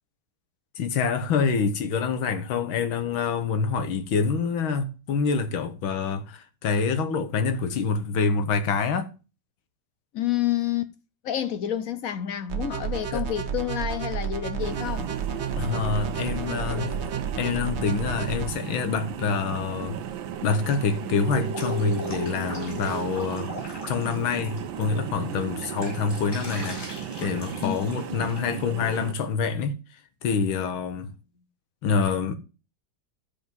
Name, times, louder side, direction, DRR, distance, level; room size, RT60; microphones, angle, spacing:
voice 1, 0.8-9.1 13.1-13.3 15.6-17.0 17.4-20.0 20.4-26.8 27.2-29.8 30.2-31.1 31.8-32.4, left 5 dB, 85° left, 2.0 m, -26 dB
voice 2, 10.1-10.9 11.2-15.1 27.6-27.8 28.1-28.2, left 11 dB, 65° left, 0.9 m, -29 dB
sound 1, 12.5-18.5, right 7 dB, 45° right, 1.0 m, -31 dB
sound 2, 14.6-29.1, right 9 dB, 80° right, 1.6 m, -35 dB
Drip, 21.3-24.8 25.2-28.4, left 1 dB, 40° left, 5.2 m, -41 dB
12.0 x 5.3 x 5.3 m
omnidirectional pair, 2.2 m